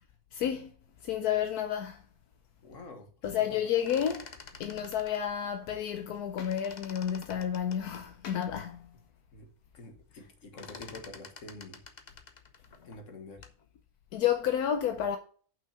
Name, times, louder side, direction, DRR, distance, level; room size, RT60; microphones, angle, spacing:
voice 1, 0.3-0.7 1.0-2.0 3.2-4.3 4.6-8.9 14.1-15.2, left 9 dB, 80° left, 1.2 m, -30 dB
voice 2, 2.6-3.6 9.3-11.8 12.8-13.5, left 2 dB, 55° left, 1.7 m, -48 dB
sound 1, 3.6-6.2 6.4-8.6 9.1-9.2 9.4-9.8 10.1-13.6, left 5 dB, 35° left, 0.8 m, -49 dB
6.0 x 5.7 x 7.0 m
omnidirectional pair, 1.6 m